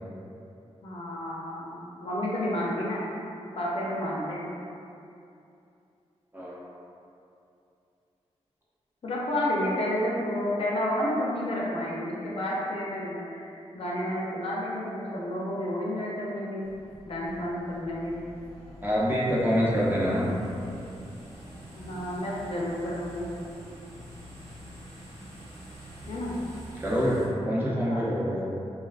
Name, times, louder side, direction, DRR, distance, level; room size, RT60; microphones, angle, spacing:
voice 1, 0.8-3.0 3.5-4.5 9.0-16.7 17.0-18.2 21.8-23.3 26.1-26.3 27.9-28.0, left 1 dB, 55° left, -5 dB, 0.5 m, -30 dB
voice 2, 6.3-6.7 18.8-20.3 26.7-28.5, equal, 15° right, -8 dB, 0.6 m, -26 dB
sound 1, 16.6-27.3, equal, 80° right, 1.0 m, -46 dB
2.4 x 2.1 x 2.4 m, 2.6 s
cardioid pair, 60°, 12 cm